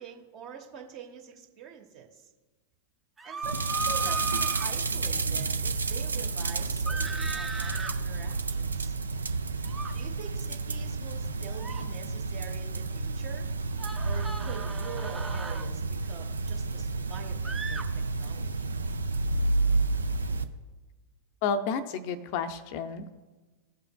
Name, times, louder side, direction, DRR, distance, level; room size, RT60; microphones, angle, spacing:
voice 1, 0.0-2.2 3.2-8.9 9.9-13.5 14.0-17.8 18.2-18.7, right 7 dB, 40° right, 3 dB, 1.1 m, -45 dB
sound 1, 3.2-4.7 6.9-7.9 9.7-9.9 11.5-11.8 13.8-15.7 17.4-17.8, right 3 dB, 15° right, 0.6 m, -36 dB
sound 2, 3.4-20.4, right 3 dB, 75° right, 0.4 m, -30 dB
voice 2, 21.4-23.2, left 5 dB, 45° left, 10 dB, 0.5 m, -31 dB
16.5 x 5.5 x 2.2 m, 1.3 s
figure-of-eight pair, 90°, 0 cm